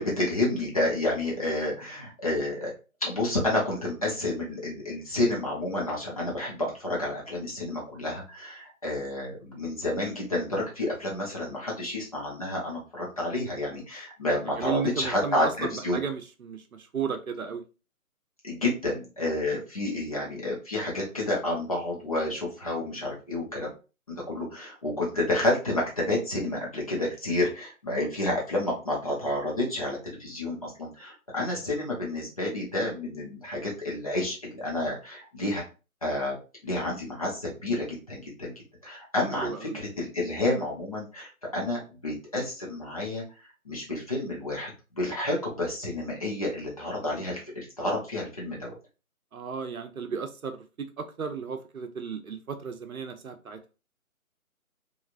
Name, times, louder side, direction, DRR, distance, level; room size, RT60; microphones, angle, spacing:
voice 1, 0.0-2.7 3.0-16.0 18.4-23.7 24.1-35.6 36.0-36.4 36.6-38.5 38.8-43.2 43.6-44.7 45.0-48.7, left 1 dB, 25° left, -3 dB, 0.7 m, -30 dB
voice 2, 14.4-17.6 39.3-39.8 49.3-53.6, right 6 dB, 70° right, 8 dB, 0.7 m, -34 dB
3.1 x 2.4 x 2.4 m, 0.32 s
figure-of-eight pair, 150°, 43 cm